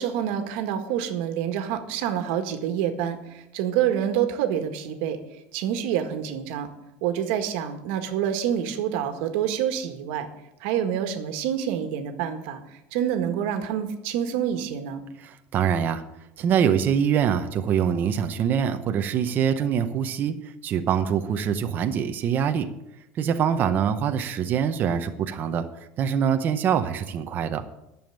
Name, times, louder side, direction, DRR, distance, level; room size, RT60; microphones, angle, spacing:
voice 1, 0.0-5.2 5.5-6.7 7.0-10.3 10.6-12.6 12.9-15.0, right 9 dB, 65° right, 7 dB, 1.7 m, -27 dB
voice 2, 15.2-16.0 16.4-20.3 20.6-22.7 23.1-25.7 26.0-27.6, right 8 dB, 30° right, 7 dB, 0.8 m, -24 dB
11.0 x 7.1 x 8.8 m, 0.88 s
cardioid pair, 165°, 6 cm